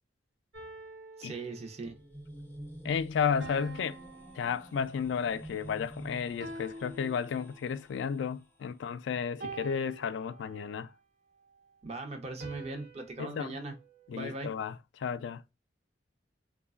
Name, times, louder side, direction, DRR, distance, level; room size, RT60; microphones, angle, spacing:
sound 1, 0.5-2.0 3.4-5.2 6.4-7.8 9.4-10.9 12.4-14.6, right 3 dB, 65° right, 1.0 m, -47 dB
voice 1, 1.2-1.9 11.8-13.7 14.1-14.5, right 2 dB, 35° right, 0.6 m, -39 dB
sound 2, 1.8-8.6, right 1 dB, 10° left, 0.5 m, -49 dB
voice 2, 2.8-4.0 4.4-10.9 13.2-13.5 14.1-14.7 15.0-15.4, left 6 dB, 70° left, 0.3 m, -33 dB
3.1 x 2.2 x 2.2 m
head